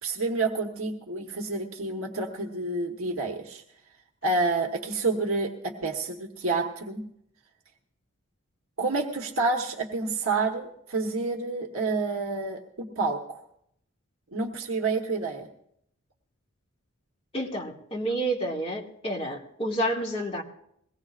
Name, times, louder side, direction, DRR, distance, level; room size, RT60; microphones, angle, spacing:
voice 1, 0.0-3.6 4.2-7.0 8.8-13.4 14.3-15.5, right 3 dB, 75° right, 2 dB, 1.2 m, -29 dB
voice 2, 17.3-20.4, right 1 dB, 25° left, -2 dB, 2.0 m, -29 dB
22.0 x 17.5 x 2.5 m, 0.72 s
head